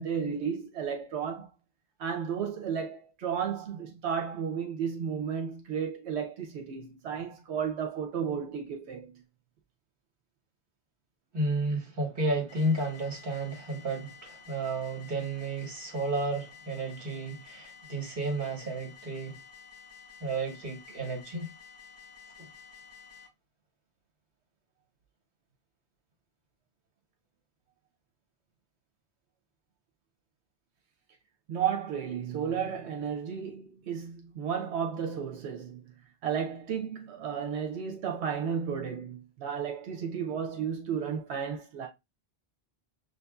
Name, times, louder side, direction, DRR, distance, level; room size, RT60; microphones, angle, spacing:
voice 1, 0.0-1.5 2.0-9.2 31.5-35.9 36.2-41.9, right 7 dB, 90° right, 0.9 m, -33 dB
voice 2, 11.3-19.4 20.2-21.5 22.4-22.5, right 2 dB, 55° right, 1.5 m, -32 dB
sound 1, 12.5-23.3, left 6 dB, 60° left, 3.3 m, -52 dB
6.0 x 2.6 x 2.3 m
omnidirectional pair, 1.1 m